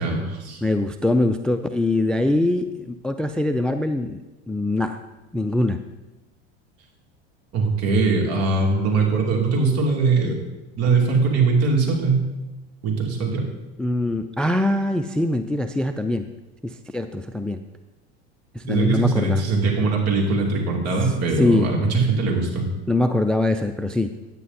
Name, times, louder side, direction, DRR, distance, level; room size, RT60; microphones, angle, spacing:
voice 1, 0.0-0.6 7.5-10.4 10.8-12.2 12.8-13.5 18.7-22.7, right 3 dB, 50° right, -1 dB, 2.9 m, -21 dB
voice 2, 0.6-5.0 5.3-5.8 13.8-16.3 16.6-17.6 18.5-19.4 21.4-21.7 22.9-24.1, left 1 dB, 5° left, 8 dB, 0.3 m, -23 dB
9.5 x 9.0 x 4.2 m, 1.1 s
supercardioid pair, 100°, 32 cm